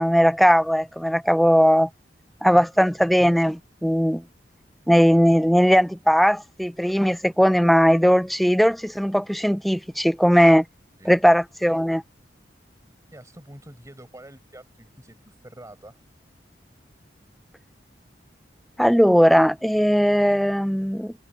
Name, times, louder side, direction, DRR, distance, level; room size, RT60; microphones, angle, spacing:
voice 1, 0.0-1.9 2.4-4.2 4.9-10.6 11.1-12.0 18.8-21.1, equal, ahead, 0.5 m, -18 dB
voice 2, 13.1-16.0, right 1 dB, 20° right, 5.1 m, -46 dB
head